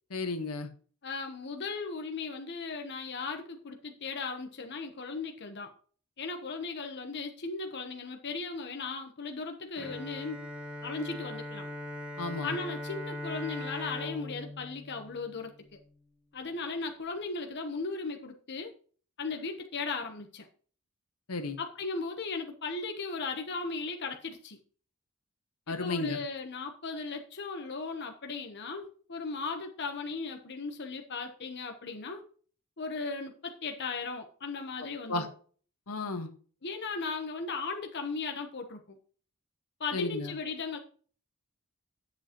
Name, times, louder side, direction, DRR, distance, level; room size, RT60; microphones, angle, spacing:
voice 1, 0.1-0.7 12.2-12.6 21.3-21.6 25.7-26.2 35.1-35.3 35.9-36.3 39.9-40.3, left 3 dB, 80° left, 6 dB, 1.4 m, -33 dB
voice 2, 1.0-5.7 6.2-10.4 10.8-11.7 12.4-15.5 16.3-18.7 19.2-20.5 21.6-24.6 25.7-32.2 32.8-35.3 36.6-38.8 39.8-40.8, left 4 dB, 50° left, 4 dB, 1.0 m, -37 dB
Bowed string instrument, 9.8-15.9, left 1 dB, 5° right, 1.7 m, -40 dB
10.5 x 7.3 x 3.0 m, 0.42 s
head